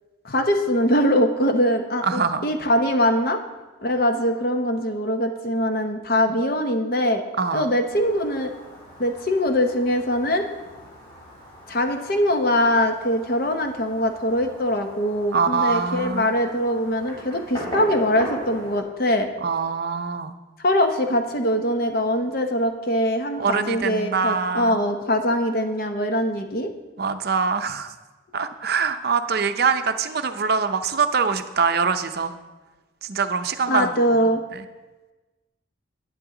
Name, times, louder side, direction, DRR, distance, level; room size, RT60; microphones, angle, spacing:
voice 1, 0.2-3.4 3.8-7.2 7.5-8.5 9.0-10.4 11.7-19.3 20.6-26.7 33.7-34.4, equal, 50° left, 5 dB, 0.9 m, -22 dB
voice 2, 2.0-2.5 7.4-7.7 15.3-16.3 19.4-20.3 23.4-24.8 27.0-27.9 28.3-32.4 33.0-33.9 34.2-34.6, right 5 dB, 50° right, 8 dB, 0.6 m, -24 dB
Fireworks, 7.8-18.8, left 1 dB, 25° left, 3.7 m, -40 dB
11.0 x 9.6 x 3.8 m, 1.2 s
head